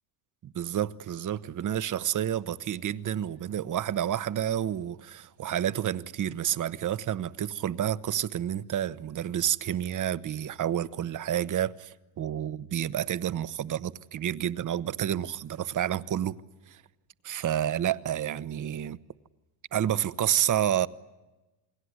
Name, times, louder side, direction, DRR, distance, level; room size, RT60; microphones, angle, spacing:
voice 1, 0.4-16.4 16.7-16.8 17.2-19.0 19.7-20.9, right 10 dB, 40° right, 1.0 m, -29 dB
29.0 x 21.5 x 9.6 m
cardioid pair, 135°, 49 cm